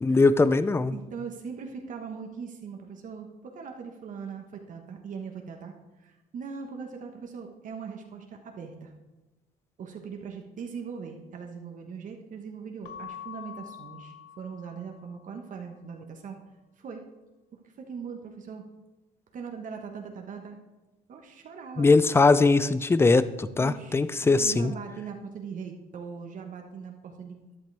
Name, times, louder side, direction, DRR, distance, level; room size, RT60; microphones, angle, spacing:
voice 1, 0.0-1.0 21.8-24.7, left 3 dB, 15° left, 15 dB, 0.5 m, -21 dB
voice 2, 0.9-8.9 9.8-16.4 16.8-17.0 17.6-18.6 19.3-20.6 21.1-21.9 23.6-27.6, right 6 dB, 50° right, 3 dB, 1.3 m, -40 dB
Keyboard (musical) / Bell, 12.8-15.3, left 9 dB, 80° left, 0.8 m, -44 dB
13.5 x 10.5 x 3.4 m, 1.1 s
cardioid pair, 110°, 17 cm